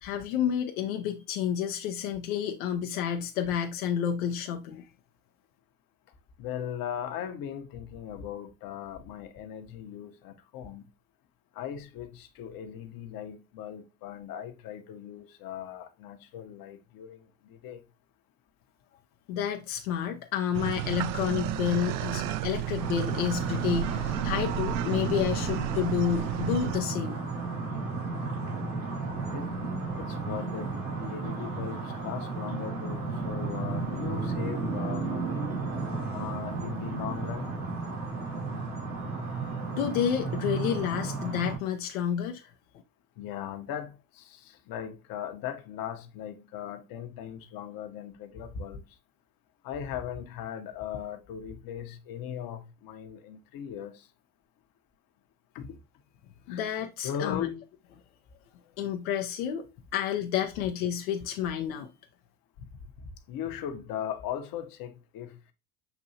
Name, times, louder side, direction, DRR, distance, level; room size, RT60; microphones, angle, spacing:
voice 1, 0.0-4.9 19.3-27.2 39.7-42.5 56.5-57.5 58.8-61.9, left 9 dB, 80° left, 0.7 m, -30 dB
voice 2, 6.4-10.9 11.5-17.8 29.3-29.5 29.9-35.5 36.1-37.6 43.2-48.8 49.6-54.1 55.5-55.8 56.5-56.6 57.0-57.6 62.6-62.7 63.0-65.5, left 9 dB, 55° left, 0.9 m, -38 dB
sound 1, 20.5-26.8, right 13 dB, 55° right, 0.5 m, -32 dB
sound 2, 22.8-41.6, right 3 dB, 80° right, 2.3 m, -33 dB
6.8 x 2.7 x 2.7 m
hypercardioid pair, 80°, 42 cm